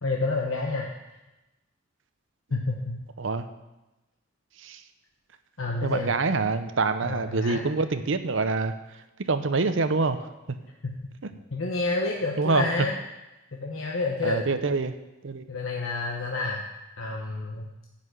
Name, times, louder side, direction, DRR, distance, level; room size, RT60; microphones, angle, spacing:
voice 1, 0.0-0.9 2.5-3.0 5.6-6.1 7.0-7.6 10.8-10.9 11.5-13.0 13.6-14.4 15.5-16.6 17.0-17.7, left 3 dB, 85° left, 0 dB, 1.1 m, -29 dB
voice 2, 5.8-8.7 9.3-10.6 11.2-11.3 12.4-12.7 14.2-14.9 15.2-15.4, right 3 dB, 70° right, 10 dB, 0.7 m, -26 dB
10.0 x 5.8 x 8.0 m, 1.0 s
head